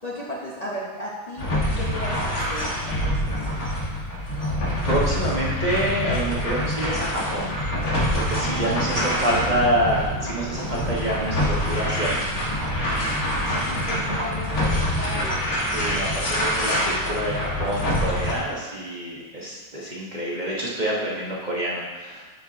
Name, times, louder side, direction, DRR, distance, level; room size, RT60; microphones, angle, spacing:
voice 1, 0.0-1.5 1.7-3.5 8.4-9.4 13.5-15.4, equal, 30° left, -6 dB, 1.0 m, -35 dB
sound 1, 1.4-18.3, equal, 90° left, 2.1 m, -25 dB
voice 2, 4.8-7.6 8.1-12.4 15.7-22.2, equal, 35° right, -5 dB, 1.2 m, -27 dB
Thunder, 8.2-14.5, right 5 dB, 90° right, 0.4 m, -37 dB
12.0 x 4.6 x 2.8 m, 1.3 s
omnidirectional pair, 1.5 m